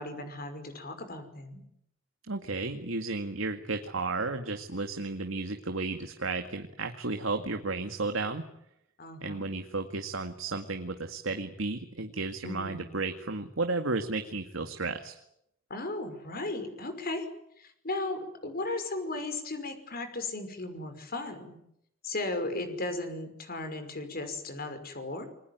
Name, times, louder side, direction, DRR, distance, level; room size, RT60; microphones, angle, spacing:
voice 1, 0.0-1.6 9.0-9.4 12.4-12.9 15.7-17.3 17.6-21.6 22.0-25.3, left 2 dB, 50° left, 8 dB, 5.5 m, -36 dB
voice 2, 2.3-8.4 9.2-15.1, right 3 dB, 80° right, 6 dB, 2.1 m, -33 dB
28.5 x 22.0 x 9.4 m, 0.77 s
head